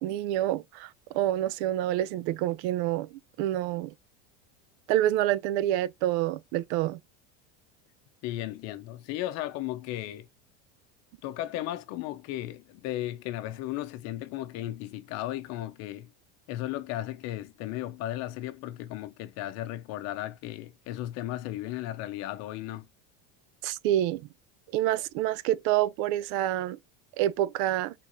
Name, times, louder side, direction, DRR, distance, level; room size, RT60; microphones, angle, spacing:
voice 1, 0.0-3.1 3.4-3.9 4.9-7.0 23.6-24.2 24.7-26.8 27.2-27.9, right 13 dB, 55° right, 0.5 m, -27 dB
voice 2, 8.2-10.3 11.2-16.1 16.5-22.9, left 14 dB, 50° left, 0.7 m, -35 dB
4.6 x 3.8 x 2.6 m
supercardioid pair, 155°, 35 cm